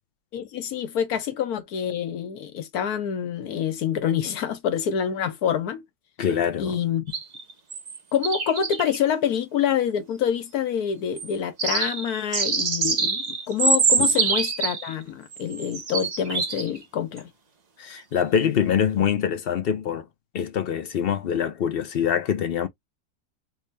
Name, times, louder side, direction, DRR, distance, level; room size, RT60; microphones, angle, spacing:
voice 1, 0.3-5.8 6.6-7.0 8.1-17.3, left 8 dB, 80° left, 1.4 m, -26 dB
voice 2, 6.2-6.8 14.0-14.1 17.8-20.0 20.3-22.7, left 8 dB, 60° left, 0.6 m, -24 dB
sound 1, 7.1-8.0 8.2-9.0 11.2-11.3 11.6-15.0 15.3-16.8 17.2-17.3, right 5 dB, 50° right, 0.5 m, -25 dB
3.5 x 2.7 x 3.2 m
omnidirectional pair, 1.6 m